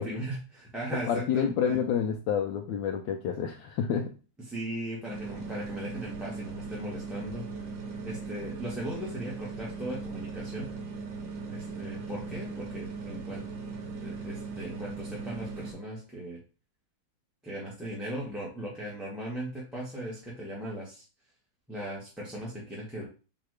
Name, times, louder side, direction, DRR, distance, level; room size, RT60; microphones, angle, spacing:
voice 1, 0.0-1.8 4.5-7.5 8.0-10.7 11.5-13.5 14.0-16.4 17.4-21.0 21.7-23.0, right 1 dB, ahead, -6 dB, 1.0 m, -38 dB
voice 2, 1.1-4.1, left 8 dB, 80° left, 3 dB, 1.2 m, -29 dB
sound 1, 5.1-15.7, right 4 dB, 80° right, 1.7 m, -39 dB
4.1 x 2.8 x 4.7 m, 0.34 s
omnidirectional pair, 2.0 m